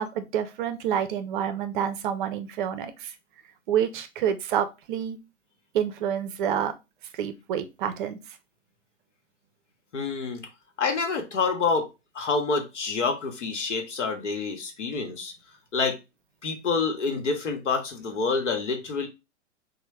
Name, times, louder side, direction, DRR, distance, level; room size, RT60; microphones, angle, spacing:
voice 1, 0.0-3.1 3.7-5.2 5.7-6.7 7.1-8.2, right 9 dB, 45° right, 0.5 m, -28 dB
voice 2, 9.9-10.4 10.8-11.9 12.1-15.3 15.7-16.0 16.4-19.1, left 4 dB, 75° left, 0.9 m, -27 dB
3.1 x 2.1 x 3.2 m
figure-of-eight pair, 110°, 36 cm